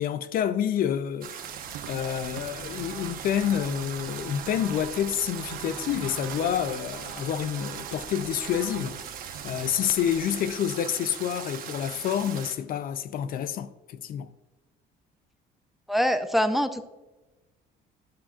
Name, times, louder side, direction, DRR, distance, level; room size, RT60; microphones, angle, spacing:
voice 1, 0.0-14.3, left 9 dB, 60° left, 0.4 m, -28 dB
sound 1, 1.2-12.5, right 8 dB, 55° right, 1.0 m, -40 dB
sound 2, 1.4-10.8, right 10 dB, 85° right, 0.5 m, -43 dB
voice 2, 15.9-16.8, equal, ahead, 0.5 m, -24 dB
11.5 x 7.1 x 2.4 m
cardioid pair, 110°, 17 cm